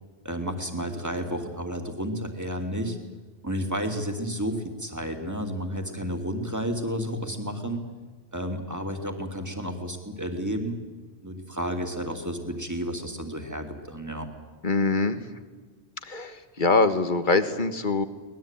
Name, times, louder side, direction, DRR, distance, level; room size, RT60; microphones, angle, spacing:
voice 1, 0.2-3.0 3.4-7.8 8.3-10.8 11.2-14.3, equal, 15° right, 4 dB, 2.8 m, -31 dB
voice 2, 14.6-15.2 16.0-18.0, left 3 dB, 45° left, 10 dB, 1.6 m, -23 dB
23.5 x 20.0 x 9.1 m, 1.4 s
omnidirectional pair, 1.1 m